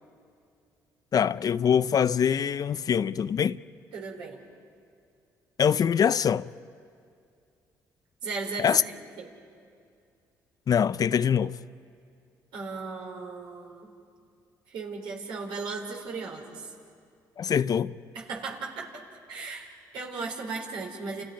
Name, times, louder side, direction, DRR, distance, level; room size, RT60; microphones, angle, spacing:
voice 1, 1.1-3.6 5.6-6.5 8.6-8.8 10.7-11.5 17.4-17.9, left 8 dB, 50° left, 0.6 m, -23 dB
voice 2, 3.9-4.4 8.2-9.3 12.5-13.9 14.7-16.7 18.1-18.9 19.3-21.2, right 4 dB, 75° right, 4.5 m, -36 dB
30.0 x 29.5 x 5.2 m
supercardioid pair, 60°, 8 cm